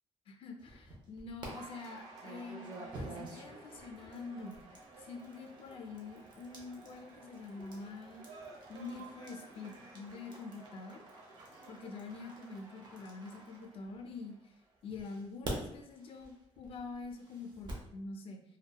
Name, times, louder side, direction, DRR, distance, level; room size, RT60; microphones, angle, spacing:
voice 1, 0.3-4.6 5.0-8.3 8.7-11.1 11.7-14.4 14.8-18.4, left 3 dB, 55° left, 4 dB, 0.4 m, -46 dB
sound 1, 0.6-1.5 2.2-14.2 14.9-17.9, right 2 dB, 40° right, 0.6 m, -49 dB
Cheering / Applause, 1.4-14.8, right 3 dB, 80° right, 0.7 m, -54 dB
2.7 x 2.1 x 2.2 m, 0.76 s
cardioid pair, 170°, 11 cm